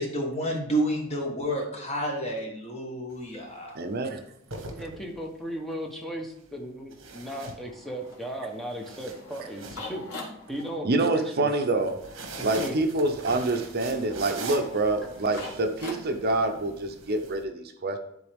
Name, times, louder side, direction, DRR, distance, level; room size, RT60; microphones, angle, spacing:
voice 1, 0.0-3.7, equal, 30° left, 1 dB, 1.3 m, -30 dB
sound 1, 3.1-3.4 4.3-5.4 6.9-8.1 8.5-10.6 11.8-17.4, right 3 dB, 65° right, 1.1 m, -42 dB
voice 2, 3.7-4.2 10.8-12.0 12.4-18.0, right 2 dB, 50° right, 6 dB, 0.6 m, -26 dB
voice 3, 4.7-10.0 10.5-11.5 12.4-12.7, equal, ahead, 1 dB, 0.9 m, -36 dB
sound 2, 7.6-16.5, left 2 dB, 85° left, 2.0 m, -45 dB
10.0 x 3.9 x 3.5 m, 0.74 s
head